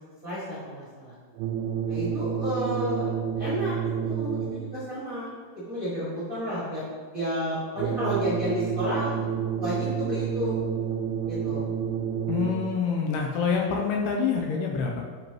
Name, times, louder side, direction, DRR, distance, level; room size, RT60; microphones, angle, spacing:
voice 1, 0.2-1.1 1.9-5.3 5.7-6.8 7.1-9.3 9.5-10.6 11.3-11.7, equal, 55° right, -10 dB, 0.9 m, -31 dB
sound 1, 1.4-4.8 7.8-12.8, right 8 dB, 85° right, 2.6 m, -29 dB
voice 2, 12.3-15.0, left 6 dB, 85° left, 0 dB, 2.3 m, -26 dB
10.5 x 5.9 x 3.0 m, 1.5 s
omnidirectional pair, 5.5 m